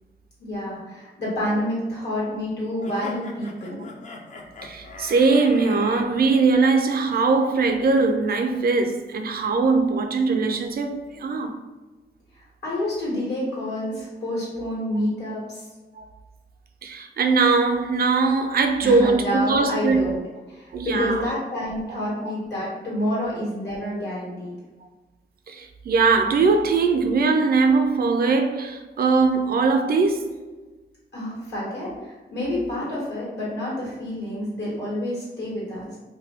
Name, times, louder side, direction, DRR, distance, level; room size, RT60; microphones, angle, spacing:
voice 1, 0.4-3.8 12.3-15.6 18.8-20.2 20.5-24.5 31.1-36.0, left 1 dB, 75° left, 1.5 m, -28 dB
sound 1, 2.8-6.1, left 2 dB, 45° left, 0.5 m, -40 dB
voice 2, 4.6-11.6 16.0-16.1 16.8-20.2 20.7-21.3 22.2-22.3 25.5-30.4, right 4 dB, 60° right, 0.4 m, -21 dB
2.6 x 2.2 x 3.4 m
wide cardioid pair, 95°, 18 cm